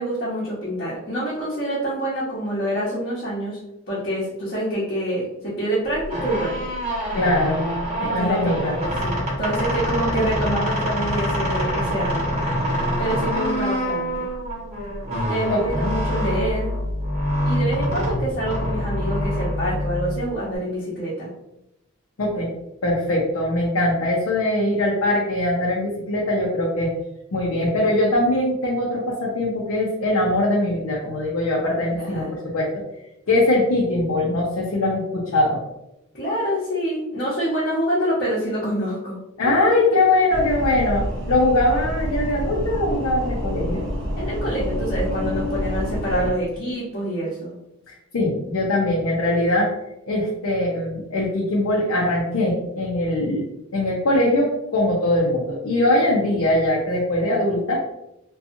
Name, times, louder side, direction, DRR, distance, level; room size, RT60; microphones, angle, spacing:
voice 1, 0.0-3.6 3.9-6.6 8.0-12.4 13.0-14.3 15.1-16.7 17.4-21.3 31.9-32.3 36.1-39.2 39.4-39.5 44.2-47.5, right 1 dB, 45° left, -9 dB, 0.8 m, -26 dB
sound 1, 5.9-20.6, equal, 35° right, 0.9 m, -25 dB
voice 2, 7.1-7.6 8.0-8.7 15.5-15.9 22.2-22.5 22.8-26.9 27.3-32.7 33.3-35.6 39.4-43.8 47.9-49.7 50.1-53.5 53.7-57.8, left 1 dB, 90° left, -3 dB, 0.5 m, -21 dB
sound 2, 40.3-46.3, equal, 60° right, 0.6 m, -27 dB
2.7 x 2.3 x 2.5 m, 0.88 s
head